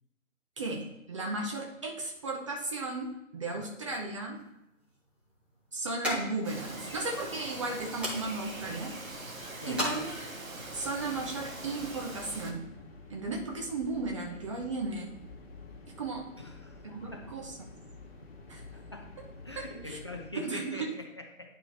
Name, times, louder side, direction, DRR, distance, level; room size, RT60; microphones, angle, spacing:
voice 1, 0.6-4.4 5.7-8.9 9.7-10.3 10.7-12.7 13.1-15.1 16.0-16.3 16.9-17.5 18.5-18.7 19.6-20.0 20.3-20.9, right 3 dB, 25° right, 0 dB, 0.7 m, -35 dB
sound 1, 4.3-10.6, equal, 5° right, 1.8 m, -40 dB
Bird vocalization bird call bird song, 6.4-12.5, right 2 dB, 85° right, 1.7 m, -42 dB
voice 2, 9.6-10.1 16.4-17.3 18.7-19.0 19.4-21.6, left 1 dB, 20° left, 2 dB, 0.4 m, -43 dB
sound 2, 10.6-20.3, left 3 dB, 50° left, 1.8 m, -50 dB
10.5 x 4.5 x 3.4 m, 0.88 s
figure-of-eight pair, 145°, 40 cm